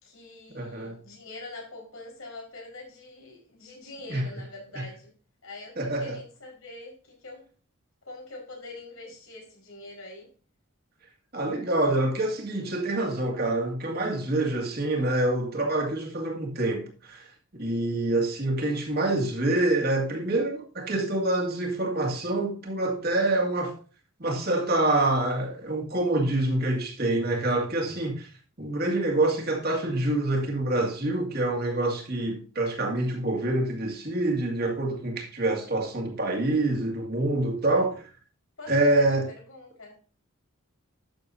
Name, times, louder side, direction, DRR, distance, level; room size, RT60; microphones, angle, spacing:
voice 1, 0.0-5.1 5.4-7.5 8.0-10.3 38.6-40.0, left 2 dB, 75° left, 4.8 m, -44 dB
voice 2, 0.5-1.0 4.1-4.3 4.7-4.8 5.8-6.2 11.3-23.8 24.2-28.3 28.6-38.1 38.7-39.3, right 2 dB, 45° right, 2.0 m, -26 dB
11.5 x 7.1 x 2.7 m
head